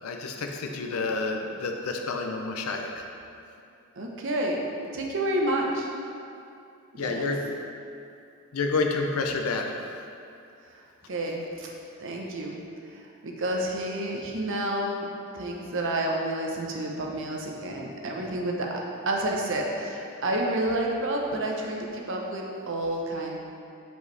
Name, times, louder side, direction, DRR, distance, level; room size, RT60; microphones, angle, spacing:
voice 1, 0.0-2.9 7.0-7.4 8.5-9.7, left 3 dB, 75° left, 3 dB, 0.5 m, -29 dB
voice 2, 4.0-4.6 4.9-5.9 7.0-7.3 10.7-10.8 11.1-11.7 12.0-12.6 12.9-15.1 15.3-18.8 19.1-23.4, right 1 dB, 60° right, -1 dB, 0.8 m, -29 dB
8.1 x 4.7 x 3.3 m, 2.6 s
head